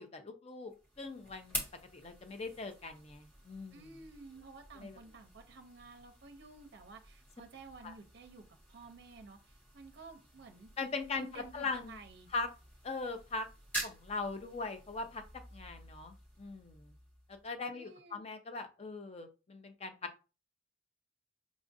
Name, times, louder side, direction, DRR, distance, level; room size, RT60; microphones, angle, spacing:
voice 1, 0.0-1.6 1.9-3.8 4.8-5.0 7.8-7.9 10.8-12.0 12.3-12.5 12.8-13.5 13.8-15.2 15.5-16.9 17.3-20.2, left 3 dB, 30° left, 7 dB, 0.5 m, -40 dB
sound 1, 0.7-17.6, right 1 dB, 10° left, 1.0 m, -48 dB
voice 2, 3.7-10.7 11.1-12.3 17.7-18.2, right 3 dB, 55° right, 5 dB, 0.5 m, -53 dB
4.9 x 2.4 x 2.6 m, 0.33 s
head